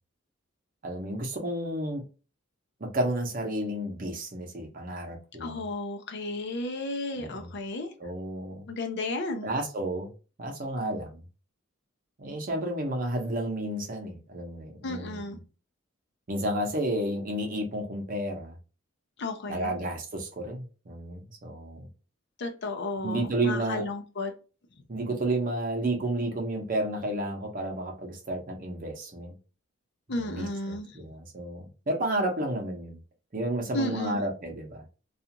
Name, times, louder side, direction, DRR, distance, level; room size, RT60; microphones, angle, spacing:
voice 1, 0.8-2.0 2.8-5.6 7.2-7.5 8.0-8.6 9.4-10.1 10.4-11.2 12.2-15.4 16.3-18.5 19.5-21.9 23.0-23.8 24.9-29.3 30.1-33.0 33.3-34.8, right 1 dB, 40° right, 0.7 m, -31 dB
voice 2, 5.4-7.9 8.7-9.5 14.8-15.4 19.2-19.8 22.4-24.3 30.1-30.9 33.7-34.2, left 2 dB, 55° left, 0.5 m, -33 dB
2.4 x 2.4 x 2.8 m
head